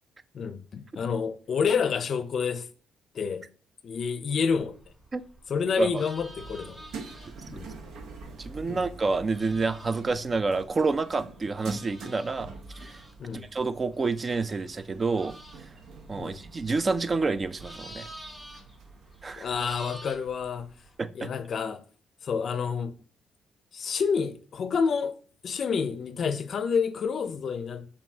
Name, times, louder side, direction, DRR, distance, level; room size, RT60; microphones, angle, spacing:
voice 1, 0.3-2.7 3.1-3.5 3.8-4.8 5.5-6.8 7.5-7.7 8.7-8.8 13.2-13.5 16.2-16.4 19.4-20.7 21.1-21.8 22.2-22.9 23.7-25.2 25.4-27.9, left 6 dB, 55° left, 0.5 m, -29 dB
sound 1, 4.5-21.0, equal, 5° right, 1.9 m, -50 dB
sound 2, 6.2-21.0, right 3 dB, 80° right, 0.7 m, -46 dB
voice 2, 8.4-12.5 12.8-13.0 13.5-15.4 16.1-18.1 19.2-19.5 21.0-21.3, right 3 dB, 35° right, 0.4 m, -28 dB
7.1 x 2.6 x 2.8 m
cardioid pair, 90°, 0 cm